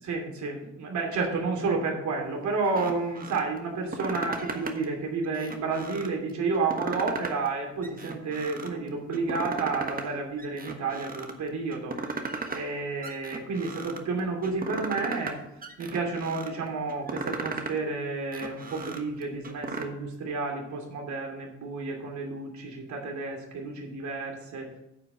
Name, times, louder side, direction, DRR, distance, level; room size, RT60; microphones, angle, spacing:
voice 1, 0.0-12.0 12.5-15.4 15.8-24.7, right 4 dB, 70° right, 2 dB, 2.8 m, -31 dB
sound 1, 2.6-3.4 3.8-4.8 5.2-6.1 6.5-7.5 7.8-8.7 9.1-10.1 10.4-11.3 11.7-12.7 13.0-14.0 14.4-15.3 15.6-16.5 16.9-17.8 18.2-19.8, right 3 dB, 30° right, 1.3 m, -36 dB
9.6 x 5.1 x 7.1 m, 0.83 s
cardioid pair, 90°, 30 cm